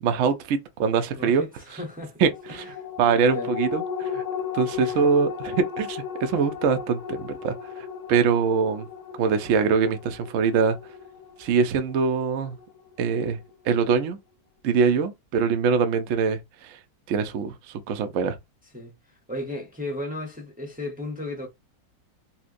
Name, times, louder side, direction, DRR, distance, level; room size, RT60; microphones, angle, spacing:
voice 1, 0.0-1.4 2.2-2.6 3.0-4.2 4.5-8.9 9.2-10.8 11.4-12.6 13.0-13.4 13.6-14.2 14.6-16.8 17.1-18.4, right 5 dB, 75° right, 0.7 m, -23 dB
voice 2, 1.2-2.2 2.5-2.7 3.0-3.5 4.8-5.1 18.7-18.9 19.3-21.5, left 1 dB, 10° right, 0.5 m, -35 dB
sound 1, 2.3-13.1 13.5-13.6, left 7 dB, 65° left, 1.0 m, -35 dB
4.3 x 2.1 x 2.5 m
omnidirectional pair, 2.0 m